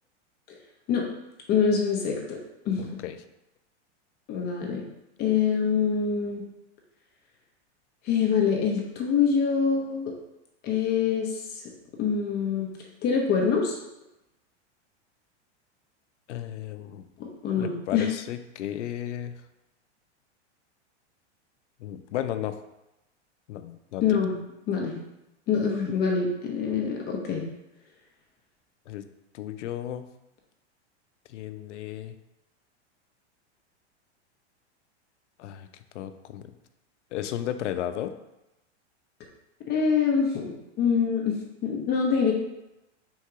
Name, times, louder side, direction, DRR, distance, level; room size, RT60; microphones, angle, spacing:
voice 1, 1.5-2.4 2.7-3.0 4.3-4.8 5.2-6.4 8.0-10.1 10.6-11.6 12.0-12.7 13.0-13.7 17.2-18.1 24.0-24.3 24.7-25.0 25.5-27.4 39.6-41.4 41.6-42.3, left 6 dB, 30° left, 0 dB, 0.7 m, -25 dB
voice 2, 2.8-3.2 16.3-17.1 17.6-19.3 21.8-22.6 23.5-24.2 28.9-29.0 29.3-30.1 31.3-32.1 35.4-35.7 35.9-36.5 37.1-38.1, left 11 dB, 90° left, 10 dB, 0.5 m, -34 dB
3.8 x 2.9 x 4.5 m, 0.92 s
supercardioid pair, 140°, 35 cm